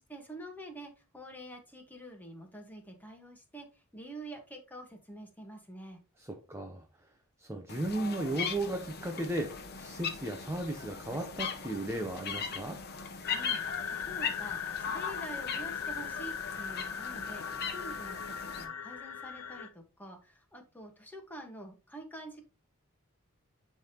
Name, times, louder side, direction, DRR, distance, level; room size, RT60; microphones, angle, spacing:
voice 1, 0.1-3.7 3.9-6.0 13.3-17.4 17.7-22.5, right 1 dB, 10° left, 1.4 m, -47 dB
voice 2, 6.2-6.8 7.4-12.8, right 1 dB, 10° right, 0.7 m, -35 dB
sound 1, 7.7-18.6, left 6 dB, 45° left, 0.9 m, -39 dB
sound 2, 13.2-19.7, left 7 dB, 80° left, 0.7 m, -39 dB
10.5 x 3.5 x 2.9 m
head